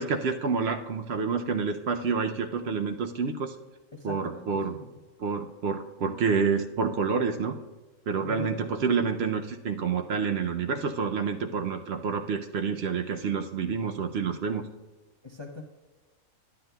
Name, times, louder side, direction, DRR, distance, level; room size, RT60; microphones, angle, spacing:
voice 1, 0.0-3.6 4.0-4.8 5.2-7.6 8.1-14.7, right 5 dB, 65° right, 6 dB, 0.6 m, -28 dB
voice 2, 3.9-4.9 8.2-8.6 15.2-15.6, left 3 dB, 50° left, 2 dB, 0.3 m, -41 dB
13.5 x 9.5 x 2.2 m, 1.2 s
omnidirectional pair, 1.5 m